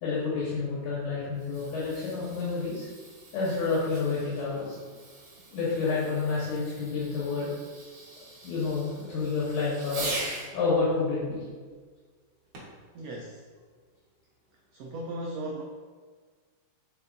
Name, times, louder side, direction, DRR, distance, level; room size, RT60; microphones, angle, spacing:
voice 1, 0.0-2.9 3.3-4.7 5.5-7.5 8.4-10.1 10.5-11.4, left 4 dB, 75° left, -8 dB, 2.6 m, -29 dB
Fireworks, 1.3-10.5 12.5-12.9 13.6-13.7, right 2 dB, 55° right, 1.9 m, -42 dB
voice 2, 12.9-13.4 14.7-15.6, right 1 dB, 85° right, -1 dB, 1.4 m, -36 dB
7.6 x 5.4 x 2.6 m, 1.5 s
omnidirectional pair, 3.6 m